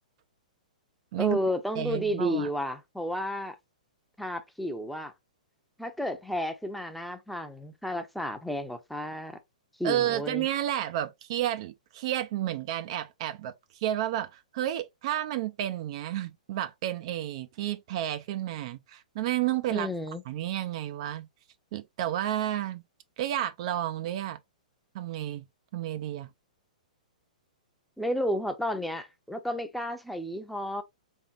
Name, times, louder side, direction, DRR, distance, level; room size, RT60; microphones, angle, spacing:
voice 1, 1.2-3.6 4.2-5.1 5.8-9.4 9.8-10.5 19.7-20.2 28.0-30.8, equal, ahead, 0.6 m, -32 dB
voice 2, 1.8-2.5 9.8-19.9 20.3-21.3 21.7-22.8 23.2-24.4 24.9-25.4 25.7-26.3, right 12 dB, 45° right, 0.4 m, -31 dB
3.7 x 3.6 x 2.4 m
figure-of-eight pair, 115°, 4 cm